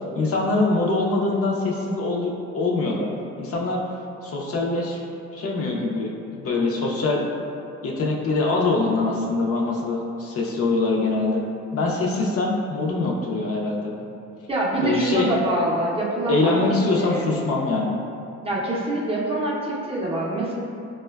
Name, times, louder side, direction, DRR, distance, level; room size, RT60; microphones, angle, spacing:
voice 1, 0.1-3.1 3.4-3.8 4.2-5.0 5.3-7.4 7.8-11.4 11.7-13.9 14.8-15.3 16.3-18.0, left 3 dB, 50° left, -2 dB, 0.5 m, -23 dB
voice 2, 14.5-17.3 18.4-20.6, right 1 dB, 20° right, -5 dB, 0.5 m, -25 dB
4.2 x 2.1 x 2.2 m, 2.7 s
cardioid pair, 90°, 30 cm